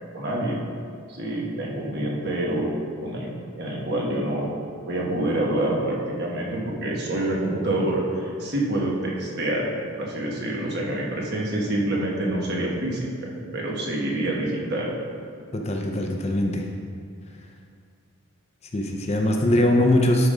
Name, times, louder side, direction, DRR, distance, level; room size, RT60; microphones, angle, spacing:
voice 1, 0.1-0.7 1.1-2.7 3.0-3.3 3.6-4.5 4.9-9.7 10.0-14.9, right 1 dB, 50° right, -3 dB, 1.3 m, -27 dB
voice 2, 15.5-16.6 18.7-20.3, left 1 dB, 30° left, 2 dB, 0.6 m, -21 dB
11.0 x 3.9 x 5.0 m, 2.2 s
head